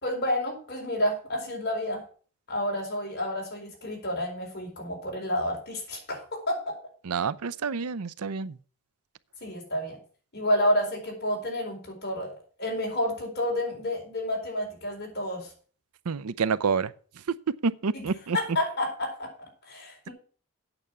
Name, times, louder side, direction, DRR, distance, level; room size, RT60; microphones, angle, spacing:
voice 1, 0.0-2.0 2.5-6.8 9.4-10.0 10.3-15.5 17.9-18.0 18.3-20.1, left 1 dB, 45° left, 4.4 m, -30 dB
voice 2, 7.0-8.6 16.1-16.9 17.6-18.4, right 5 dB, 85° right, 0.6 m, -28 dB
8.9 x 6.7 x 7.2 m
head